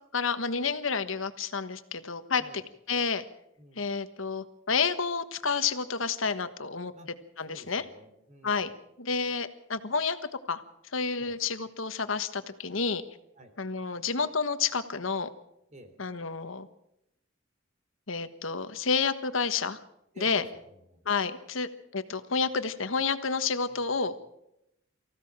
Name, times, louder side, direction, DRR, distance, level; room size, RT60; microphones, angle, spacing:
voice 1, 0.1-2.4 2.9-3.2 3.8-6.9 7.4-7.8 8.4-8.7 9.0-10.2 10.5-10.6 10.9-13.0 13.6-15.3 16.0-16.7 18.1-19.8 20.2-20.4 21.0-24.1, left 5 dB, 75° left, 11 dB, 1.4 m, -30 dB
voice 2, 7.5-8.7 11.2-11.4 13.4-13.5 15.7-15.9 20.1-21.0 23.6-24.0, equal, 35° right, 6 dB, 3.6 m, -50 dB
24.5 x 15.5 x 7.4 m, 0.82 s
head